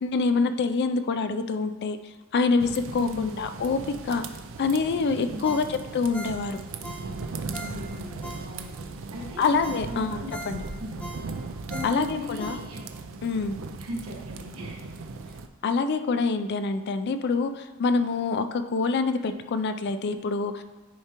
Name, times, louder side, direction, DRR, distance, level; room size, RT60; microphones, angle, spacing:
voice 1, 0.0-2.0 2.3-4.2 4.6-6.6 9.4-10.6 11.8-12.6 13.2-13.6 15.6-20.6, left 4 dB, 50° left, 9 dB, 0.4 m, -26 dB
sound 1, 2.6-15.5, right 3 dB, 60° right, 0.5 m, -38 dB
voice 2, 3.0-3.3 5.3-5.7 7.6-9.5 9.9-10.3 10.8-11.0 11.7-12.8 13.8-14.8, equal, 75° right, -2 dB, 1.5 m, -38 dB
Ringtone, 5.4-8.9 9.3-9.4 9.6-13.1 13.5-13.6, equal, 5° left, 0.8 m, -42 dB
10.0 x 4.6 x 2.9 m, 1.2 s
head